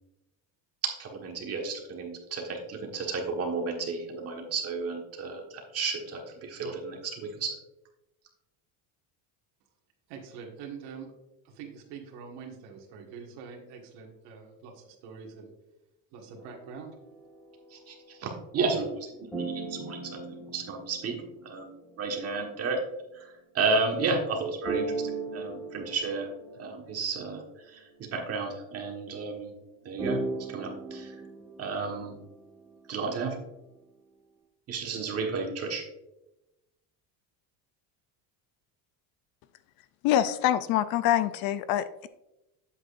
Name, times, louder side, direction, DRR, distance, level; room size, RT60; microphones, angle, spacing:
voice 1, 0.8-7.6 17.7-20.2 20.5-21.2 21.4-21.7 22.0-22.8 23.1-26.3 26.6-29.5 29.8-30.2 30.5-31.1 31.6-32.2 32.9-33.4 34.7-35.8, right 4 dB, 35° right, 1 dB, 1.5 m, -32 dB
voice 2, 10.1-11.1 11.4-15.5 16.1-16.9, right 6 dB, 70° right, 1 dB, 1.8 m, -44 dB
sound 1, 16.4-19.0 19.3-22.9 24.6-28.4 30.0-32.3, right 3 dB, ahead, 1.9 m, -38 dB
voice 3, 40.0-42.1, left 12 dB, 60° left, 13 dB, 0.5 m, -25 dB
8.6 x 7.7 x 2.5 m, 0.95 s
cardioid pair, 160°, 42 cm